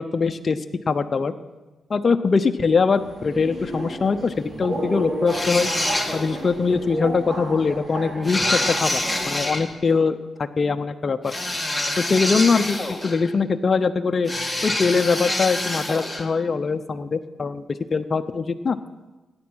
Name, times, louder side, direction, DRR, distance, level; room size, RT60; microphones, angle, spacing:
voice 1, 0.0-1.3 1.9-5.7 6.1-11.3 12.0-14.3 14.6-18.8, left 4 dB, 45° left, 7 dB, 0.7 m, -22 dB
Subway metro underground, 2.9-9.7, right 1 dB, 40° right, 3.2 m, -32 dB
sound 1, 5.3-6.4 8.2-9.6 11.2-13.3 14.3-16.3, left 1 dB, 5° left, 2.0 m, -26 dB
17.0 x 9.7 x 6.2 m, 1.2 s
cardioid pair, 70°, 0 cm